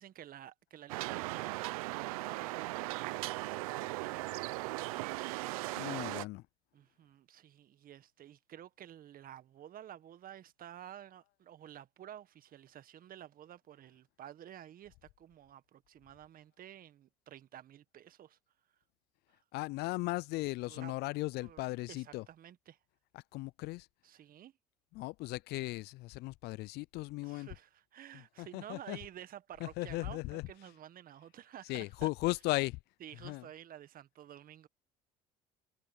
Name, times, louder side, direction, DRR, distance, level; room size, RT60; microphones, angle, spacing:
voice 1, 0.0-5.5 6.7-18.4 20.7-20.9 21.4-22.8 24.0-24.5 27.2-32.1 33.0-34.7, right 11 dB, 55° right, 1.6 m, -52 dB
sound 1, 0.9-6.2, right 21 dB, 85° right, 0.9 m, -38 dB
voice 2, 5.8-6.4 19.5-22.3 23.1-23.9 24.9-27.5 28.1-29.0 29.6-30.7 31.6-32.8 33.1-33.5, left 21 dB, 65° left, 0.4 m, -37 dB
hypercardioid pair, 70°, 18 cm